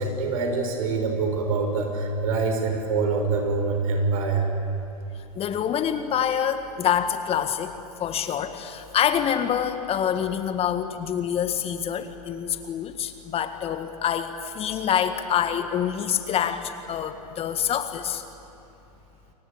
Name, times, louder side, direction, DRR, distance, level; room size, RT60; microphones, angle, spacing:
voice 1, 0.0-4.5, right 4 dB, 60° right, 4 dB, 6.5 m, -25 dB
voice 2, 5.3-7.7 8.0-18.2, left 9 dB, 30° left, 9 dB, 1.7 m, -26 dB
29.0 x 23.5 x 8.6 m, 2.9 s
hypercardioid pair, 105°, 20 cm